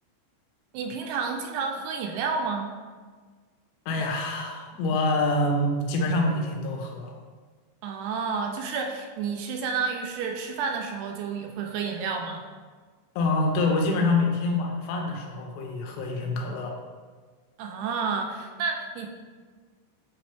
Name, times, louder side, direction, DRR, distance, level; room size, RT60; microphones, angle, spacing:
voice 1, 0.7-2.7 7.8-12.4 17.6-19.1, right 5 dB, 85° right, 3 dB, 2.5 m, -30 dB
voice 2, 3.9-7.2 13.2-16.8, left 2 dB, 85° left, 2 dB, 3.0 m, -26 dB
8.8 x 3.1 x 3.4 m, 1.5 s
omnidirectional pair, 4.9 m